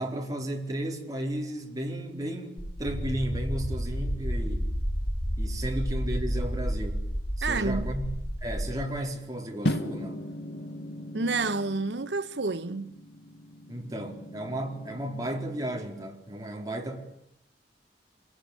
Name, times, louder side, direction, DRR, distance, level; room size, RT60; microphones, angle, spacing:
voice 1, 0.0-4.7 5.4-7.0 7.4-8.1 8.4-10.3 13.7-17.0, right 1 dB, 20° right, 4.5 m, -34 dB
sound 1, 2.6-8.7, equal, 25° left, 4.2 m, -31 dB
voice 2, 7.4-7.9 11.1-12.9, right 3 dB, 90° right, 1.2 m, -29 dB
sound 2, 9.6-15.9, left 1 dB, 75° left, 2.0 m, -37 dB
26.5 x 20.5 x 10.0 m
head